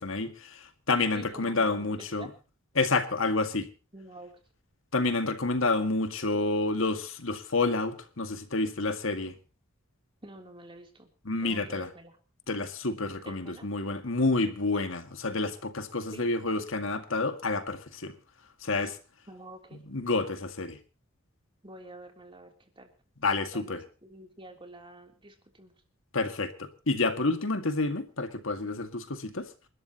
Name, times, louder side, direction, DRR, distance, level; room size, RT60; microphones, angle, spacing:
voice 1, 0.0-2.3 2.8-3.7 4.9-9.4 11.3-11.9 12.5-18.1 18.6-19.0 19.9-20.8 23.2-23.8 26.1-29.5, left 3 dB, 65° left, 2.0 m, -29 dB
voice 2, 1.1-2.3 3.9-4.3 10.2-11.1 11.4-12.2 13.2-13.7 16.1-16.3 19.3-19.8 21.6-22.9 23.5-25.7, right 1 dB, 25° right, 3.2 m, -48 dB
28.5 x 12.5 x 3.0 m
head